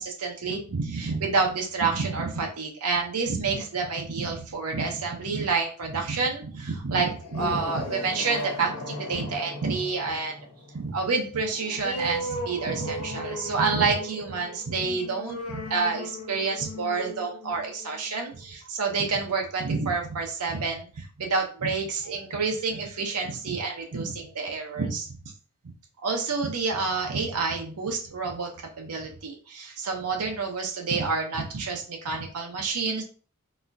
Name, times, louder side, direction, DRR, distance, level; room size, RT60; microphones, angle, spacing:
voice 1, 0.0-10.4 10.7-25.2 26.0-28.5 28.8-33.0, right 4 dB, 90° right, 2 dB, 0.8 m, -28 dB
sound 1, 7.1-18.3, left 1 dB, 70° left, 0.8 m, -37 dB
4.1 x 2.3 x 2.6 m, 0.38 s
head